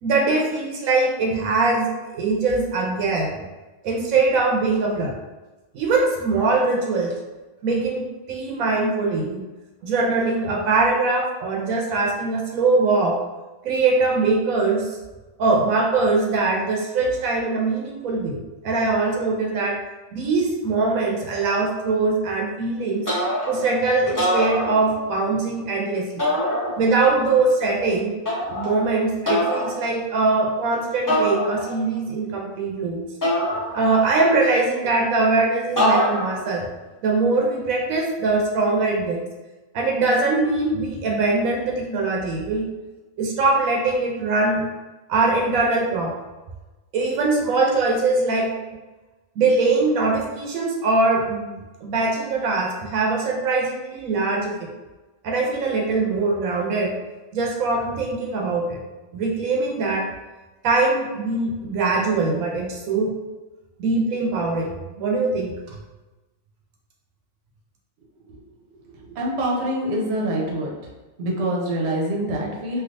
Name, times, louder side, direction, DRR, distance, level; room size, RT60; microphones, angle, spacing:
voice 1, 0.0-3.4 3.8-5.2 5.7-7.1 7.6-9.4 9.8-13.2 13.6-15.0 15.4-18.4 18.6-19.8 20.1-23.0 23.5-26.2 26.8-28.1 28.5-33.0 33.7-36.7 37.0-39.2 39.7-42.7 43.2-44.7 45.1-46.1 46.9-48.5 49.4-54.5 55.2-56.9 57.3-58.8 59.1-60.0 60.6-63.1 63.8-65.8, right 3 dB, 85° right, 0 dB, 1.0 m, -22 dB
sound 1, 23.0-23.7 24.1-25.2 26.2-27.1 28.2-28.8 29.2-29.8 31.1-31.9 33.2-34.2 35.8-36.5, equal, 20° left, 0.8 m, -24 dB
voice 2, 69.1-70.7 71.2-72.8, right 1 dB, 60° right, -2 dB, 1.0 m, -25 dB
3.3 x 2.6 x 2.5 m, 1.2 s
omnidirectional pair, 1.4 m